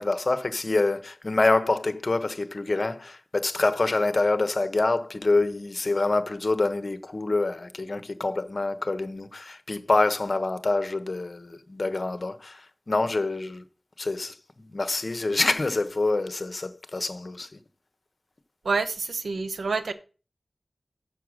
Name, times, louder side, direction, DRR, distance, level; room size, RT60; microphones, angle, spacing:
voice 1, 0.0-13.6 14.0-17.6, left 2 dB, 55° left, 1.2 m, -26 dB
voice 2, 18.6-19.9, right 4 dB, 90° right, 0.8 m, -27 dB
6.9 x 6.7 x 6.4 m
wide cardioid pair, 50°, 0 cm